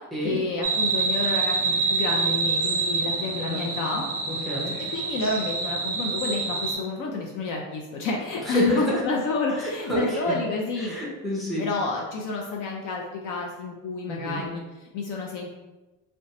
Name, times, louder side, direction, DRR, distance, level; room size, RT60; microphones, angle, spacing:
voice 1, 0.2-4.0 4.9-11.0 11.6-15.5, left 3 dB, 50° left, 0 dB, 0.5 m, -29 dB
sound 1, 0.6-6.7, right 4 dB, 35° right, 0.7 m, -26 dB
voice 2, 4.3-4.7 8.5-8.9 9.9-10.2 10.8-11.6 14.1-14.4, equal, ahead, -6 dB, 0.7 m, -28 dB
2.5 x 2.2 x 4.0 m, 1.1 s
cardioid pair, 140°, 41 cm